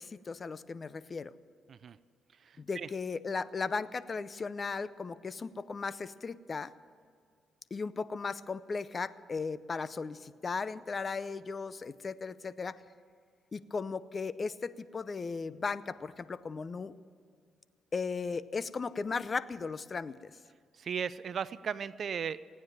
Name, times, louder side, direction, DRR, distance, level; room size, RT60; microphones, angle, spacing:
voice 1, 0.0-1.3 2.6-6.7 7.7-12.8 13.5-16.9 17.9-20.3, left 4 dB, 35° left, 16 dB, 0.6 m, -36 dB
voice 2, 2.4-2.9 20.8-22.5, right 7 dB, 50° right, 17 dB, 0.4 m, -36 dB
17.0 x 9.6 x 8.8 m, 2.2 s
cardioid pair, 90°, 0 cm